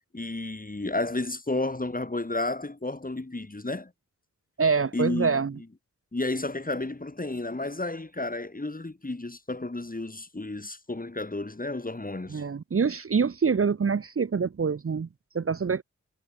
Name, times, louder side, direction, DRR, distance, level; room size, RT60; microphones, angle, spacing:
voice 1, 0.1-3.9 4.9-5.4 6.1-12.4, left 2 dB, 30° left, 3.0 m, -32 dB
voice 2, 4.6-5.5 12.3-15.1 15.3-15.8, right 5 dB, 50° right, 0.8 m, -25 dB
cardioid pair, 50°, 29 cm